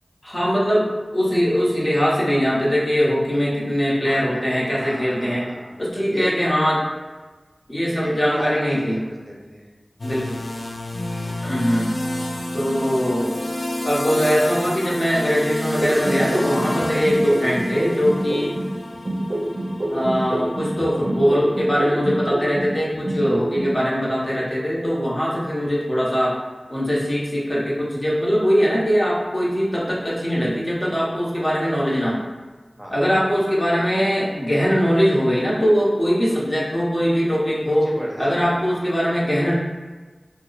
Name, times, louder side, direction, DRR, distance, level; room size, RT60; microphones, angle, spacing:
voice 1, 0.2-5.5 5.8-6.8 7.7-9.0 10.0-10.4 11.4-12.0 12.5-13.3 13.8-18.6 19.9-26.4 26.7-32.2 32.9-37.9 38.2-39.6, equal, 40° left, -6 dB, 0.9 m, -21 dB
voice 2, 4.0-6.4 7.9-9.7 11.1-11.4 32.7-33.0 37.6-38.6, equal, 20° right, -4 dB, 0.6 m, -34 dB
sound 1, 10.0-22.6, left 1 dB, 75° left, 0.3 m, -30 dB
sound 2, 15.8-18.7 19.1-22.7 23.1-23.7, right 1 dB, 55° right, 0.4 m, -26 dB
2.9 x 2.0 x 3.9 m, 1.3 s
wide cardioid pair, 55°, 0 cm